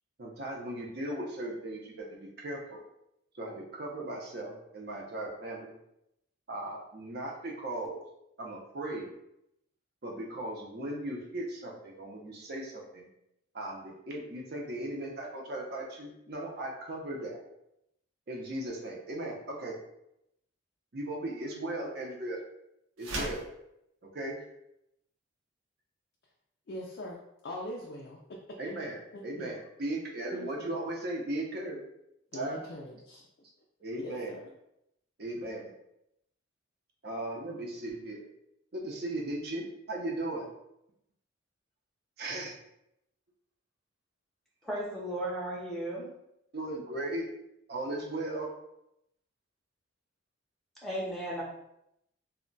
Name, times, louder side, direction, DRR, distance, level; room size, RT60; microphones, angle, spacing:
voice 1, 0.2-2.8 3.3-5.7 6.5-8.0 8.4-9.1 10.0-13.1 13.5-17.4 18.3-19.7 20.9-22.4 23.0-23.4 24.1-24.4 28.6-31.8 32.3-32.6 33.8-34.3 35.2-35.7 37.0-38.3 38.7-40.5 42.2-42.6 46.5-47.3 47.7-48.5, right 1 dB, 50° right, -1 dB, 0.6 m, -37 dB
sound 1, 23.0-23.5, right 1 dB, 85° right, 0.7 m, -36 dB
voice 2, 26.7-28.6 29.1-29.5 30.3-30.7 32.3-33.2 34.0-34.5, left 1 dB, 50° left, -2 dB, 0.3 m, -42 dB
voice 3, 44.6-46.1 50.8-51.4, right 1 dB, ahead, -5 dB, 0.6 m, -35 dB
2.2 x 2.1 x 3.8 m, 0.81 s
head